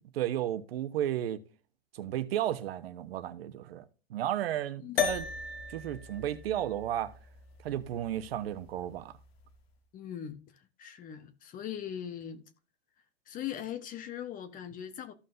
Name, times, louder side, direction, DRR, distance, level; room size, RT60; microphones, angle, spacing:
voice 1, 0.1-1.4 1.9-3.8 4.1-5.3 5.7-7.1 7.6-9.1, right 11 dB, 75° right, 1.0 m, -33 dB
sound 1, 5.0-9.5, left 7 dB, 80° left, 1.5 m, -37 dB
voice 2, 9.9-12.4 13.3-15.1, left 10 dB, 25° left, 1.0 m, -40 dB
14.0 x 5.6 x 2.5 m
hypercardioid pair, 130°, 30 cm